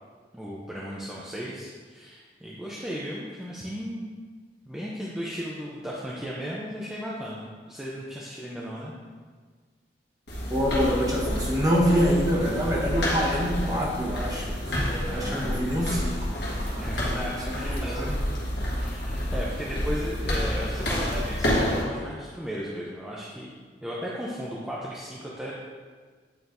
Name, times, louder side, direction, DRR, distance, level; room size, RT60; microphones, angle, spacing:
voice 1, 0.3-4.1 4.7-8.9 15.1-15.6 16.8-18.1 18.7-23.5 23.8-25.5, equal, 5° right, -6 dB, 0.5 m, -35 dB
sound 1, 10.3-21.8, equal, 80° left, 1.4 m, -29 dB
voice 2, 10.5-14.5 14.8-16.4 16.7-16.9 17.5-18.2, equal, 20° right, -4 dB, 1.1 m, -26 dB
8.7 x 4.4 x 2.6 m, 1.5 s
head